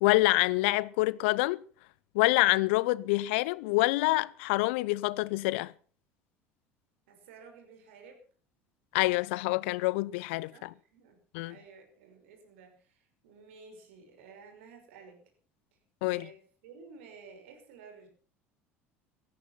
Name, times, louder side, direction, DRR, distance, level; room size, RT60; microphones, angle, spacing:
voice 1, 0.0-1.6 2.1-5.7 8.9-10.7 11.3-11.5 16.0-16.2, left 21 dB, 65° left, 0.7 m, -26 dB
voice 2, 7.1-8.3 10.5-11.2 11.4-15.2 16.1-18.1, right 5 dB, 70° right, 5.8 m, -53 dB
17.5 x 14.0 x 5.9 m
figure-of-eight pair, 65°, 7 cm